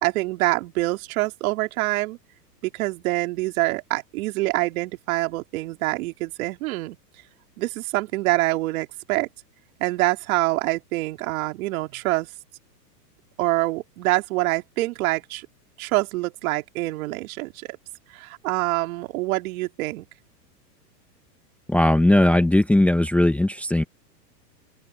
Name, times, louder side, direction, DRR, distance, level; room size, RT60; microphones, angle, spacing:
voice 1, 0.0-2.2 2.7-7.0 7.6-9.3 9.8-12.3 13.4-15.5 15.8-17.8 18.1-20.0, right 20 dB, 55° right, 3.3 m, -25 dB
voice 2, 21.7-23.8, left 1 dB, 5° left, 1.2 m, -18 dB
open air
hypercardioid pair, 130°, 49 cm